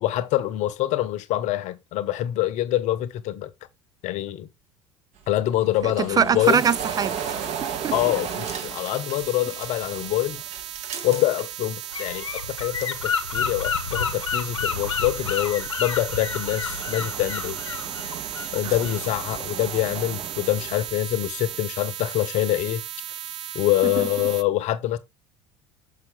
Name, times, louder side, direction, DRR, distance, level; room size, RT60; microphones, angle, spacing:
voice 1, 0.0-3.5 4.0-4.5 5.3-6.6 7.9-10.4 11.0-17.6 18.5-22.8 23.5-25.0, left 14 dB, 50° left, 0.9 m, -25 dB
sound 1, 5.2-12.2 12.5-14.1 14.4-21.6, right 7 dB, 50° right, 1.4 m, -37 dB
voice 2, 5.8-7.9 18.6-18.7 23.8-24.0, right 7 dB, 25° right, 0.4 m, -24 dB
sound 2, 6.4-24.4, right 11 dB, 75° right, 0.6 m, -36 dB
Gull seagull / Wind, 11.9-19.2, left 7 dB, 80° left, 1.0 m, -30 dB
6.1 x 5.9 x 3.7 m
figure-of-eight pair, 65°, 15 cm